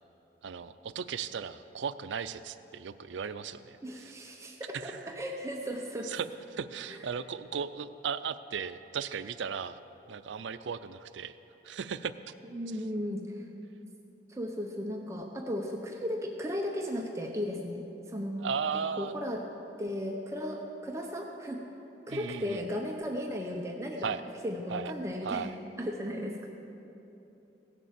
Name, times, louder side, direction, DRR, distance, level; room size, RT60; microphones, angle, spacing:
voice 1, 0.4-4.1 4.7-5.0 6.0-6.3 6.5-9.8 10.1-11.4 11.6-12.1 18.4-19.1 22.1-22.6 24.0-24.2 24.7-24.9 25.2-25.6, right 6 dB, 80° right, 13 dB, 0.5 m, -36 dB
voice 2, 3.8-6.1 6.9-7.0 12.5-13.4 14.3-18.5 19.0-19.4 19.8-21.7 22.1-24.2 24.4-25.5 25.8-26.5, equal, 15° right, 1 dB, 0.7 m, -35 dB
16.5 x 6.8 x 7.4 m, 3.0 s
head